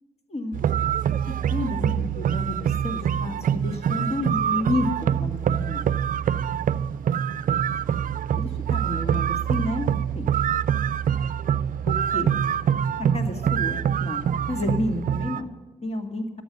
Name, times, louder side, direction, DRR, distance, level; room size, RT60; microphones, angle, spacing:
sound 1, 0.5-15.4, right 9 dB, 55° right, 0.5 m, -25 dB
voice 1, 1.5-5.9 8.3-9.9 10.2-10.3 11.9-12.4 13.1-15.5 15.8-16.2, left 2 dB, 40° left, 5 dB, 2.2 m, -30 dB
14.0 x 8.7 x 6.7 m, 1.2 s
supercardioid pair, 50°, 17 cm